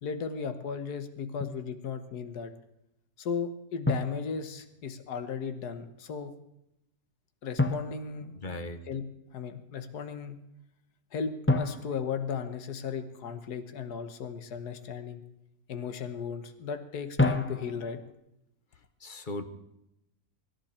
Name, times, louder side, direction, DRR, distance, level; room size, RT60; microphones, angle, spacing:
voice 1, 0.0-2.5 3.2-6.3 7.4-8.3 8.9-9.0 9.3-10.4 11.1-15.2 15.7-18.0, left 6 dB, 75° left, 9 dB, 1.8 m, -36 dB
Drum, 1.4-1.7 3.9-5.0 7.6-9.0 11.5-13.2 17.2-18.1, left 2 dB, 10° left, 0.6 m, -31 dB
voice 2, 8.3-8.8 19.0-19.5, left 1 dB, 30° left, 7 dB, 1.3 m, -37 dB
24.5 x 11.0 x 4.4 m, 0.85 s
omnidirectional pair, 1.7 m